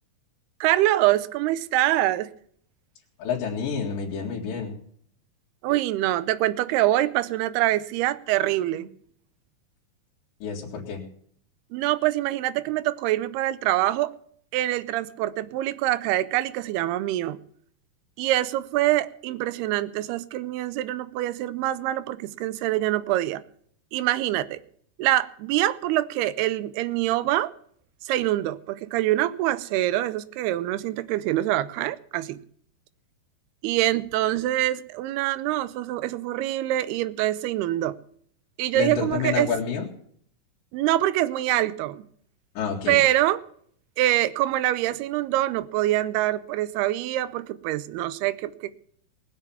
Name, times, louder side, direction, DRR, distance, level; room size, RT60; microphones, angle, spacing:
voice 1, 0.6-2.3 5.6-8.9 11.7-14.1 14.5-17.4 18.2-23.4 23.9-24.6 25.0-27.5 28.0-32.4 33.6-38.0 38.6-39.5 40.7-42.1 42.9-43.4 44.0-48.8, right 15 dB, 85° right, 2.7 m, -25 dB
voice 2, 3.2-4.8 10.4-11.0 38.7-39.9 42.5-43.0, left 6 dB, 60° left, 3.4 m, -28 dB
20.0 x 7.3 x 7.0 m
omnidirectional pair, 4.5 m